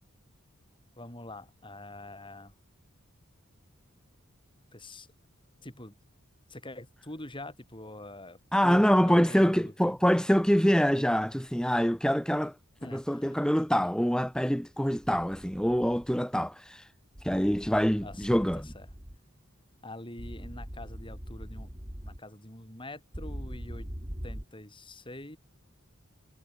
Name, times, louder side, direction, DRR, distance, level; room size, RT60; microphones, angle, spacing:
voice 1, 1.0-2.5 4.7-5.1 5.6-6.0 6.5-10.0 12.8-13.4 18.0-18.9 19.8-23.9 24.2-25.4, left 1 dB, 25° left, 7.3 m, -45 dB
voice 2, 8.5-12.5 12.9-16.9 17.2-18.6, equal, 5° left, 2.4 m, -25 dB
sound 1, 15.0-16.1 17.2-19.2 20.2-22.2 23.1-24.4, equal, 25° right, 4.7 m, -42 dB
head